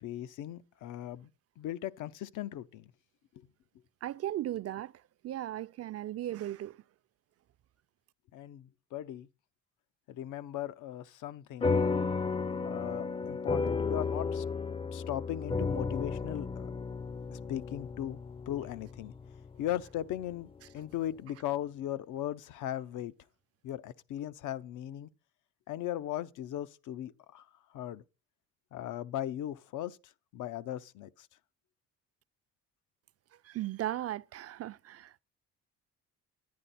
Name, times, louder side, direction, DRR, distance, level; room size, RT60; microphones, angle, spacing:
voice 1, 0.0-1.3 1.6-2.9 3.4-3.5 8.3-9.3 10.1-11.8 12.6-14.4 14.9-16.7 17.3-18.2 18.5-19.1 19.6-20.5 20.7-23.1 23.6-25.1 25.7-27.5 27.7-28.0 28.7-31.3, left 12 dB, 80° left, 0.7 m, -38 dB
voice 2, 4.0-4.9 5.2-6.8 33.4-35.2, right 13 dB, 55° right, 0.5 m, -37 dB
sound 1, 11.6-20.4, left 4 dB, 20° left, 0.4 m, -33 dB
10.0 x 9.5 x 4.2 m
cardioid pair, 90°, 30 cm